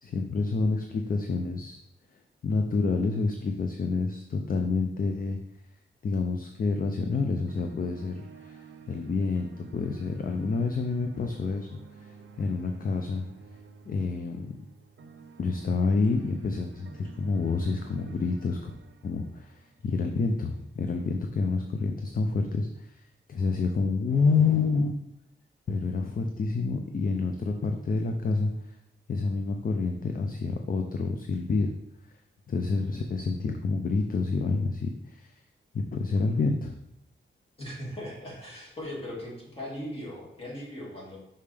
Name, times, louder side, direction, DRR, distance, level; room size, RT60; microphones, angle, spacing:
voice 1, 0.0-1.8 2.4-5.4 6.0-12.1 12.4-13.2 13.9-14.6 15.4-18.7 19.0-25.0 25.7-28.7 29.1-31.7 32.0-32.2 32.5-35.4 35.7-36.8, left 4 dB, 45° left, 5 dB, 0.4 m, -28 dB
sound 1, 7.1-20.2, right 4 dB, 65° right, 0.6 m, -50 dB
voice 2, 37.6-41.2, left 1 dB, 25° left, -5 dB, 2.3 m, -39 dB
5.5 x 5.0 x 3.4 m, 0.81 s
wide cardioid pair, 155°, 21 cm